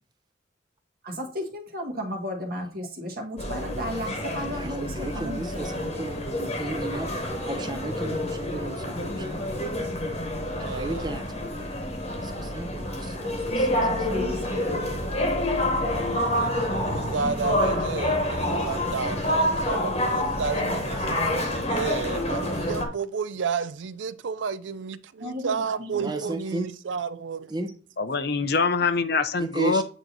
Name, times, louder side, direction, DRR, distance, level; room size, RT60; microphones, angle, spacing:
voice 1, 1.0-5.8 6.5-7.0 13.8-15.1 25.2-26.6, equal, 50° right, 1.6 m, -35 dB
sound 1, 3.4-22.9, left 1 dB, 35° left, 1.3 m, -28 dB
voice 2, 4.4-9.4 10.6-11.8 12.1-14.2 25.9-26.7 27.5-27.7 29.4-29.8, right 2 dB, 20° right, 0.8 m, -34 dB
voice 3, 10.6-11.1 16.2-27.5, right 6 dB, 75° right, 0.5 m, -32 dB
voice 4, 28.0-29.8, left 4 dB, 55° left, 0.7 m, -24 dB
8.9 x 3.0 x 4.0 m
head